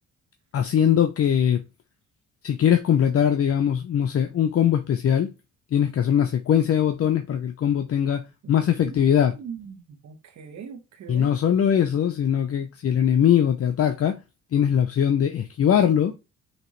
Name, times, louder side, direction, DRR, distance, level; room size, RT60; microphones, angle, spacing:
voice 1, 0.5-1.6 2.4-5.3 5.7-8.2 8.5-9.4 11.1-14.2 14.5-16.1, left 9 dB, 50° left, 0.7 m, -21 dB
voice 2, 8.4-9.0 9.3-11.3, right 6 dB, 65° right, 1.4 m, -40 dB
6.0 x 2.9 x 3.0 m
cardioid pair, 90°, 30 cm